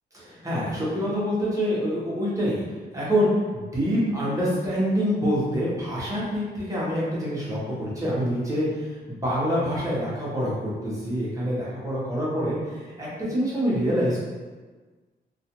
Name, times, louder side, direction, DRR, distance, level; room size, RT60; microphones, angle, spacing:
voice 1, 0.1-2.6 2.9-14.2, equal, 20° right, -7 dB, 0.9 m, -26 dB
2.4 x 2.3 x 2.9 m, 1.3 s
cardioid pair, 110°, 18 cm